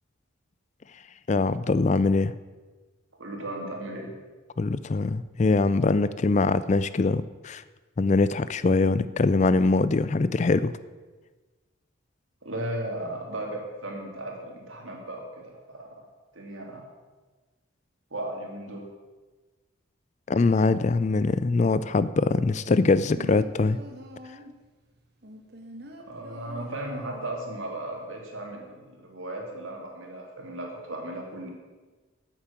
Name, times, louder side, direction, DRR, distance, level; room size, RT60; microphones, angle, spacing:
voice 1, 1.3-2.3 4.6-7.6 8.0-10.7 20.3-23.8, left 3 dB, 35° left, 15 dB, 0.3 m, -23 dB
voice 2, 3.2-4.1 12.4-16.1 16.3-16.9 18.1-18.8 26.1-31.5, right 1 dB, 75° right, 0 dB, 2.8 m, -36 dB
sound 1, 22.7-24.6 25.2-27.6 27.9-28.0, right 1 dB, 50° right, 1.3 m, -45 dB
9.1 x 8.7 x 7.3 m, 1.3 s
head